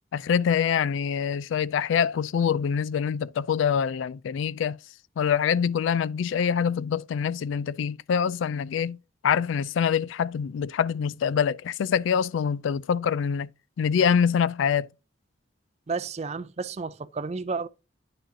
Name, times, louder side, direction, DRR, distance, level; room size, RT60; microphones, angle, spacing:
voice 1, 0.1-4.8 5.2-9.0 9.2-13.5 13.8-14.9, left 7 dB, 75° left, 0.3 m, -25 dB
voice 2, 15.9-17.7, right 4 dB, 35° right, 0.4 m, -31 dB
9.8 x 6.2 x 2.7 m
head